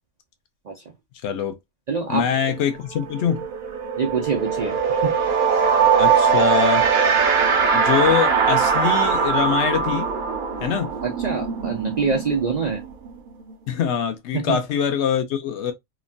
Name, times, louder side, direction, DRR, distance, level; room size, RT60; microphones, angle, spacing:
voice 1, 1.2-1.6 2.1-3.4 6.0-6.9 7.7-10.1 10.6-10.9 13.7-15.7, left 8 dB, 65° left, 0.8 m, -23 dB
voice 2, 1.9-2.3 4.0-5.2 11.0-12.8 14.3-14.6, right 4 dB, 90° right, 0.3 m, -25 dB
sound 1, 2.5-2.7 3.0-13.5, right 6 dB, 50° right, 0.6 m, -21 dB
3.0 x 2.1 x 2.4 m
omnidirectional pair, 1.4 m